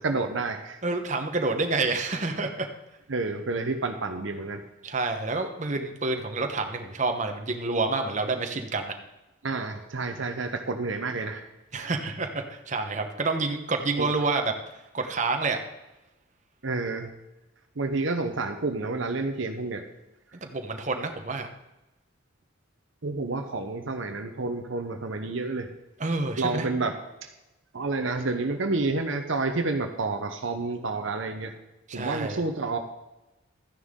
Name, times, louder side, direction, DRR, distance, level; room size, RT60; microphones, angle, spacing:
voice 1, 0.0-0.8 3.1-4.6 9.4-11.5 14.0-14.1 16.6-17.1 17.8-19.8 23.0-25.7 26.4-26.9 27.2-27.3 27.7-31.5 31.9-32.8, right 3 dB, 65° right, 6 dB, 0.8 m, -29 dB
voice 2, 0.8-2.7 4.8-9.0 11.7-14.5 14.9-15.6 20.4-21.5 26.0-26.7 31.9-32.4, right 3 dB, 35° right, 5 dB, 1.0 m, -28 dB
13.0 x 10.0 x 3.7 m, 1.0 s
head